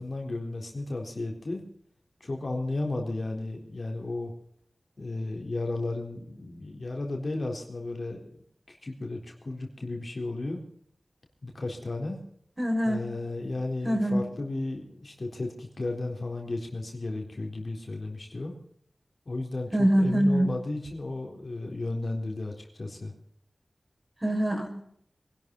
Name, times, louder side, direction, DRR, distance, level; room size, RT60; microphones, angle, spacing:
voice 1, 0.0-1.6 2.2-4.3 5.0-8.4 8.7-10.6 11.4-12.2 12.8-18.6 19.3-23.1, left 2 dB, 55° left, 2 dB, 3.9 m, -34 dB
voice 2, 12.6-13.0 13.8-14.2 19.7-20.5 24.2-24.8, equal, 25° right, 1 dB, 5.6 m, -24 dB
25.0 x 12.0 x 4.0 m, 0.68 s
cardioid pair, 45°, 0 cm